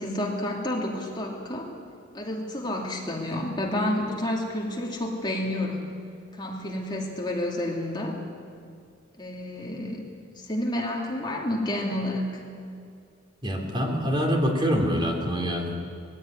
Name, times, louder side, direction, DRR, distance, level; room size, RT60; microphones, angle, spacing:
voice 1, 0.0-1.7 2.1-5.9 6.3-8.2 9.2-10.1 10.4-12.4, left 1 dB, 25° left, -1 dB, 2.8 m, -30 dB
voice 2, 13.4-15.8, equal, 25° right, 2 dB, 2.9 m, -25 dB
20.5 x 16.0 x 9.6 m, 2.4 s
head